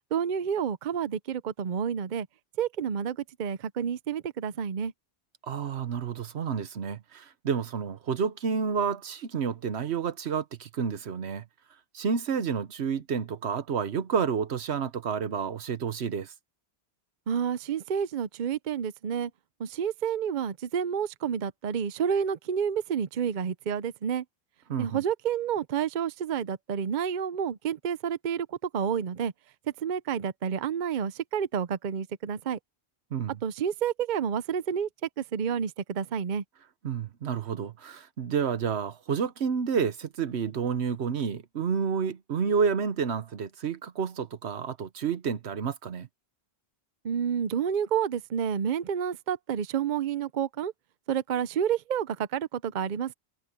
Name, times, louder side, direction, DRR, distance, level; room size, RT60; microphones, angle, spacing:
voice 1, 0.1-2.3 2.6-4.9 17.3-19.3 19.6-24.2 24.8-29.3 29.8-32.6 33.4-34.9 35.2-36.4 47.0-50.7 51.1-53.1, right 8 dB, 50° right, 0.7 m, -29 dB
voice 2, 5.5-11.4 11.9-16.3 24.7-25.0 33.1-33.4 36.8-46.1, right 6 dB, 75° right, 1.2 m, -30 dB
omnidirectional pair, 1.1 m